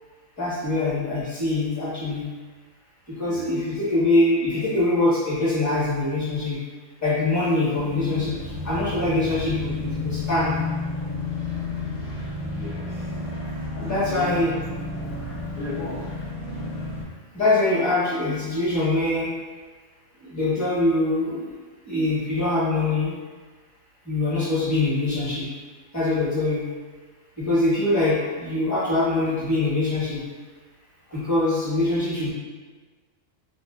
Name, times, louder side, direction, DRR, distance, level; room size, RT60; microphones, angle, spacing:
voice 1, 0.4-2.2 3.2-6.6 7.0-8.4 8.6-10.5 13.8-14.6 17.3-19.3 20.3-21.4 21.9-23.1 24.1-25.5 25.9-26.6 27.4-30.2 31.1-32.3, left 2 dB, 15° left, -9 dB, 1.0 m, -23 dB
voice 2, 3.2-3.5 12.5-13.1 13.4-14.4 15.6-16.1 31.1-31.2, left 2 dB, 60° left, -9 dB, 0.5 m, -36 dB
sound 1, 7.7-17.0, left 3 dB, 40° left, 0.9 m, -31 dB
3.1 x 2.5 x 2.3 m, 1.4 s
omnidirectional pair, 1.3 m